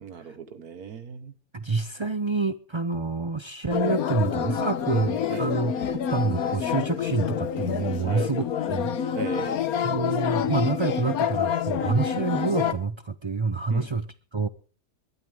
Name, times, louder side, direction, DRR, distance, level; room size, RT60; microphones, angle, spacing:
voice 1, 0.0-1.3 5.3-5.5 8.0-8.3 9.1-9.6 11.9-12.0 13.7-13.9, right 6 dB, 75° right, 1.7 m, -36 dB
voice 2, 1.5-5.8 6.1-9.2 9.8-14.1 14.3-14.5, right 4 dB, 50° right, 0.3 m, -27 dB
sound 1, 3.7-12.7, left 8 dB, 70° left, 1.4 m, -27 dB
21.0 x 12.5 x 3.5 m
omnidirectional pair, 1.6 m